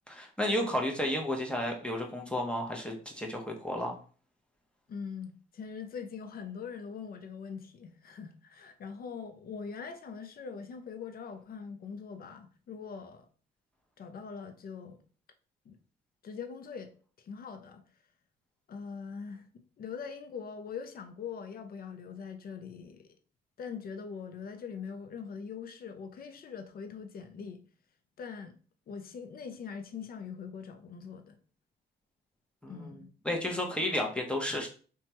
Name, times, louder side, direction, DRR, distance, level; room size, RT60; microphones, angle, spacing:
voice 1, 0.1-4.0 32.6-34.7, left 1 dB, 5° left, 0.7 m, -32 dB
voice 2, 4.9-13.3 14.0-15.0 15.7-15.8 16.2-16.9 17.2-17.8 18.7-19.4 19.8-23.1 23.6-27.6 28.2-28.6 28.9-31.4 32.7-33.1, left 6 dB, 50° left, 0.5 m, -42 dB
2.9 x 2.3 x 2.8 m
cardioid pair, 90°, 20 cm